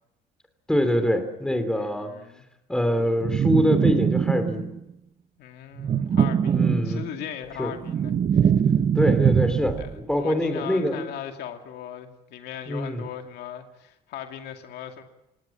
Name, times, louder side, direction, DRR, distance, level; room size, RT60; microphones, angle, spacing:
voice 1, 0.7-2.1 2.7-4.7 6.5-7.1 7.6-7.7 8.9-11.0 12.7-13.0, equal, 5° left, 8 dB, 3.2 m, -24 dB
voice 2, 1.8-2.4 5.4-8.1 8.4-8.5 9.8-9.9 10.2-15.0, left 10 dB, 75° left, 5 dB, 2.4 m, -38 dB
sound 1, 3.2-4.8 5.8-7.3 7.6-10.0, right 8 dB, 40° right, 0.9 m, -22 dB
27.0 x 18.5 x 7.3 m, 0.88 s
cardioid pair, 110°, 17 cm